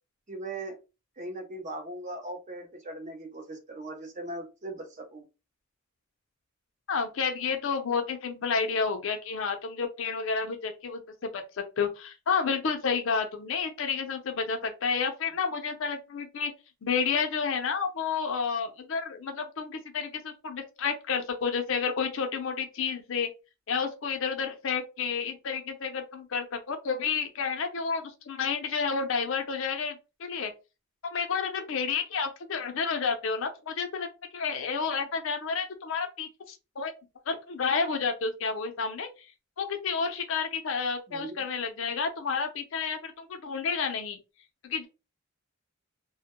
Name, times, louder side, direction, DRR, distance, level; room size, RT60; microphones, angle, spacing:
voice 1, 0.3-0.8 1.2-5.2 41.1-41.4, right 2 dB, 35° right, 0.5 m, -39 dB
voice 2, 6.9-11.4 11.8-16.5 16.8-23.3 23.7-30.5 31.0-34.1 34.3-36.9 37.3-39.3 39.6-44.2 44.6-44.9, left 5 dB, 60° left, 0.5 m, -30 dB
2.1 x 2.1 x 2.8 m
head